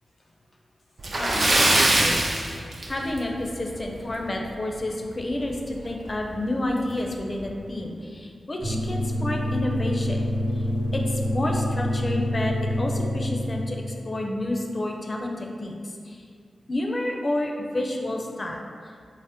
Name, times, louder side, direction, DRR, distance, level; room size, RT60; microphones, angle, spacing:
Splash splatter, 1.0-3.4 3.7-3.9 4.3-4.4 5.8-5.9 6.3-6.4 7.0-7.2, right 1 dB, 65° right, 0.4 m, -22 dB
voice 1, 1.2-2.2 2.9-10.3 10.5-10.7 10.9-13.8 14.0-16.2 16.7-18.6, left 1 dB, 45° left, 1 dB, 0.4 m, -30 dB
sound 1, 8.6-14.0, left 1 dB, 30° right, 0.9 m, -26 dB
3.4 x 2.0 x 2.7 m, 2.1 s
cardioid pair, 40°, 0 cm